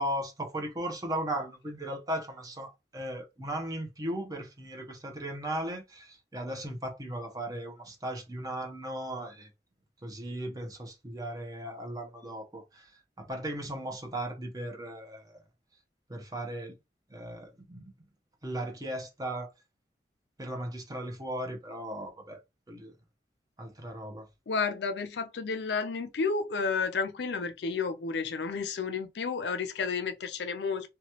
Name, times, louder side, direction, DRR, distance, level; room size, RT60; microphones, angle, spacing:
voice 1, 0.0-9.5 10.0-12.9 13.2-15.3 16.1-16.7 17.1-17.9 18.4-19.5 20.4-22.4 22.7-22.9 23.6-24.3, right 1 dB, 20° right, 0.7 m, -37 dB
voice 2, 24.5-30.9, left 5 dB, 80° left, 0.5 m, -31 dB
2.9 x 2.2 x 2.9 m
head